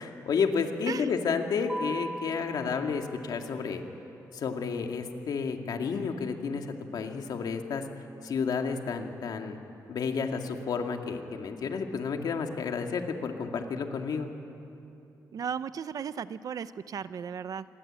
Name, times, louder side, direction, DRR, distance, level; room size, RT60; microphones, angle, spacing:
voice 1, 0.0-3.8 4.3-7.8 8.2-9.6 9.9-14.3, left 5 dB, 65° left, 4 dB, 2.3 m, -31 dB
Mallet percussion, 1.7-3.8, right 1 dB, 5° right, 1.0 m, -40 dB
voice 2, 15.3-17.7, right 7 dB, 55° right, 14 dB, 0.7 m, -35 dB
27.5 x 22.5 x 8.9 m, 2.8 s
wide cardioid pair, 145°, 7 cm